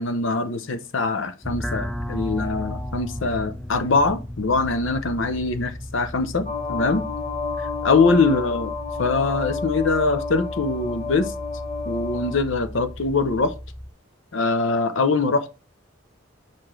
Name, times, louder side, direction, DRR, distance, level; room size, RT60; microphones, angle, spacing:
voice 1, 0.0-7.0 7.8-8.7 9.0-11.3 11.9-13.5 14.3-15.5, left 3 dB, 65° left, 0.7 m, -23 dB
sound 1, 1.4-13.9, equal, ahead, 0.3 m, -35 dB
sound 2, 6.5-12.4, left 4 dB, 30° left, 1.1 m, -31 dB
5.9 x 4.9 x 3.7 m
head